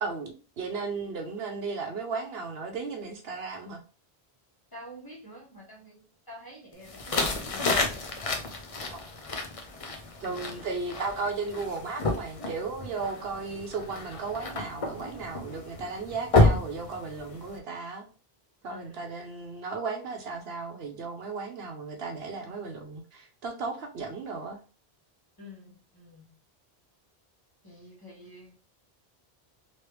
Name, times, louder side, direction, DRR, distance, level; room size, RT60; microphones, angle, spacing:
voice 1, 0.0-3.8 10.2-18.0 18.6-24.6, right 4 dB, 70° right, 1.0 m, -35 dB
voice 2, 4.7-7.8 18.7-19.1 25.4-26.3 27.6-28.5, left 1 dB, 20° left, 1.3 m, -48 dB
sound 1, 6.9-17.6, left 2 dB, 40° left, 0.5 m, -30 dB
3.2 x 2.9 x 3.1 m
omnidirectional pair, 1.1 m